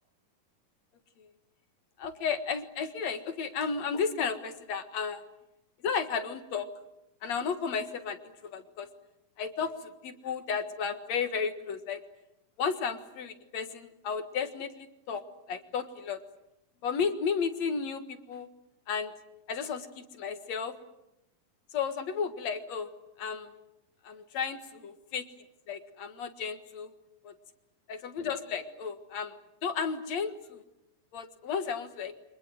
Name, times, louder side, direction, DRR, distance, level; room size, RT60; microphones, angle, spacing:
voice 1, 2.0-5.2 5.8-6.7 7.2-8.2 8.5-8.9 9.4-12.0 12.6-15.2 15.5-16.2 16.8-18.5 18.9-19.1 19.5-20.7 21.7-22.9 23.2-23.5 24.0-25.3 25.7-26.9 27.2-27.3 27.9-29.4 29.6-30.6 31.1-32.1, left 6 dB, 55° left, 8 dB, 2.6 m, -33 dB
29.5 x 25.5 x 7.8 m, 0.87 s
omnidirectional pair, 3.9 m